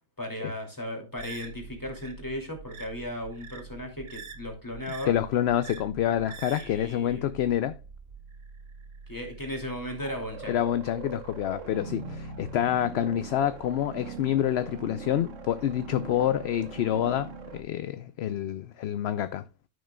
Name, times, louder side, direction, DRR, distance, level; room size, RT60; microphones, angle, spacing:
voice 1, 0.2-5.1 6.5-7.3 9.1-10.6, left 1 dB, 15° left, 2.7 m, -36 dB
sound 1, 1.2-17.6, right 5 dB, 85° right, 1.4 m, -43 dB
voice 2, 5.1-7.7 10.5-19.4, left 11 dB, 65° left, 0.8 m, -27 dB
12.5 x 6.3 x 2.3 m
omnidirectional pair, 1.2 m